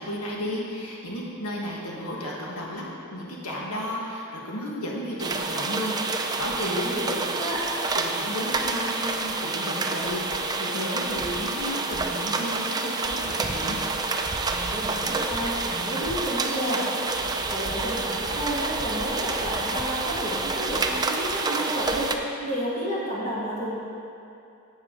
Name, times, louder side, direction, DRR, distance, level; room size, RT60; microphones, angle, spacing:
voice 1, 0.0-2.8 3.1-7.2 8.0-13.8, equal, 80° left, -3 dB, 1.6 m, -33 dB
sound 1, 5.2-22.2, right 3 dB, 20° right, 0.5 m, -28 dB
voice 2, 6.6-7.6 14.5-23.7, equal, 30° left, -8 dB, 1.9 m, -31 dB
12.0 x 8.0 x 3.8 m, 2.7 s
head